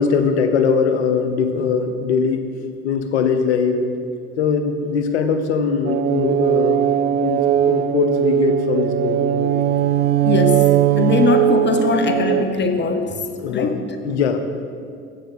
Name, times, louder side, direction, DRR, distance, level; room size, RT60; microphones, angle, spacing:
voice 1, 0.0-2.4 2.8-3.8 4.4-9.7 13.4-13.8 14.0-14.4, left 6 dB, 80° left, 8 dB, 0.7 m, -21 dB
sound 1, 5.9-12.5, right 11 dB, 30° right, 0.4 m, -18 dB
voice 2, 10.2-13.2 13.5-13.8, left 5 dB, 35° left, 6 dB, 1.0 m, -21 dB
7.6 x 6.8 x 5.6 m, 2.2 s
hypercardioid pair, 60°, 33 cm